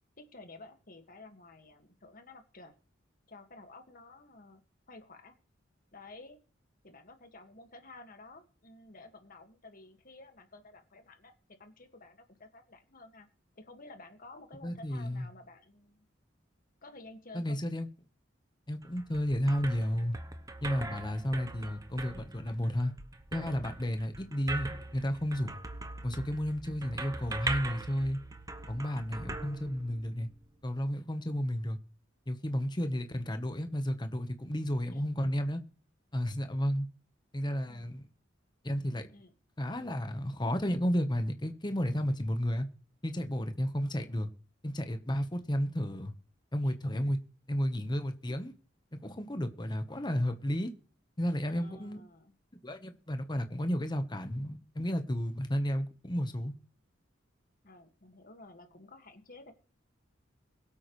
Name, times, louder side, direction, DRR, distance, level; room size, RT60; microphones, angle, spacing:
voice 1, 0.2-2.7 3.3-4.6 4.9-5.3 5.9-6.4 6.8-11.3 11.6-13.3 13.6-16.1 16.8-17.6 34.9-35.1 37.7-37.9 39.1-39.3 46.6-46.7 51.5-52.3 57.6-59.5, left 2 dB, 45° left, 2.0 m, -52 dB
voice 2, 14.6-15.3 17.3-17.9 18.7-20.2 20.6-22.9 23.3-25.6 26.0-28.2 28.7-30.3 30.6-31.8 32.3-35.6 36.1-36.9 37.3-38.1 38.6-39.1 39.6-42.7 43.0-44.3 44.6-46.1 46.5-47.2 47.5-48.5 48.9-50.7 51.2-52.0 52.6-56.5, equal, 25° left, 1.1 m, -32 dB
sound 1, 18.8-30.3, right 2 dB, 20° right, 1.0 m, -41 dB
22.5 x 8.6 x 3.2 m
head